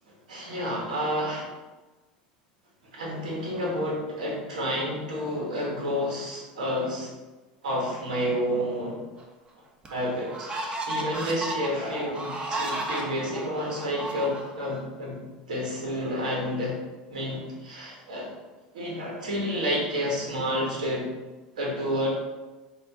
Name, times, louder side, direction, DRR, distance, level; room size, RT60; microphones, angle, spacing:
voice 1, 0.3-1.5 2.9-7.1 7.6-9.0 9.9-15.2 15.5-16.8 17.1-18.3 18.7-21.1 21.6-22.1, equal, 85° right, -3 dB, 1.2 m, -30 dB
sound 1, 9.2-9.3 9.8-14.8, right 2 dB, 25° right, 0.8 m, -34 dB
4.3 x 2.6 x 3.9 m, 1.2 s
hypercardioid pair, 90°, 4 cm